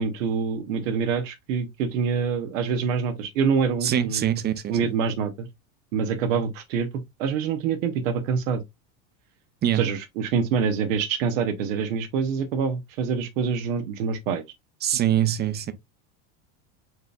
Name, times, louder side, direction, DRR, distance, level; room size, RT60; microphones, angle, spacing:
voice 1, 0.0-4.2 4.7-5.5 5.9-8.6 9.7-14.4, right 6 dB, 90° right, 0.8 m, -26 dB
voice 2, 3.8-4.7 9.6-9.9 14.8-15.7, right 11 dB, 25° right, 0.6 m, -23 dB
4.6 x 3.4 x 2.3 m
supercardioid pair, 125°, 38 cm